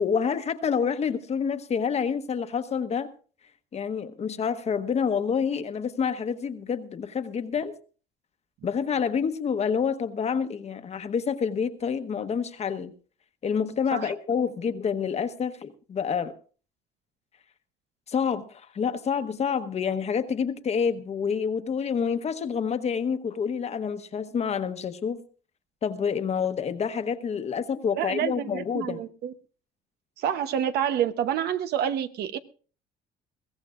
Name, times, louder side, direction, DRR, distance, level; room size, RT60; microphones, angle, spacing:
voice 1, 0.0-3.1 3.7-7.7 8.6-12.9 13.4-16.3 18.1-25.2 25.8-29.0, left 6 dB, 40° left, 1.1 m, -28 dB
voice 2, 27.9-29.3 30.2-32.4, right 9 dB, 70° right, 1.0 m, -28 dB
22.0 x 15.5 x 2.5 m
cardioid pair, 110°, 17 cm